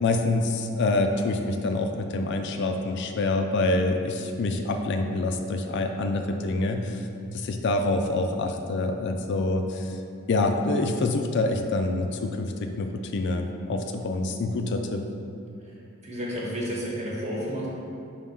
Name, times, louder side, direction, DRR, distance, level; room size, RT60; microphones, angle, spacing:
voice 1, 0.0-7.0 7.3-9.9 10.3-15.0, left 2 dB, 50° left, 5 dB, 0.4 m, -26 dB
voice 2, 16.0-17.7, equal, 30° right, -4 dB, 1.1 m, -31 dB
5.0 x 3.7 x 5.4 m, 2.6 s
head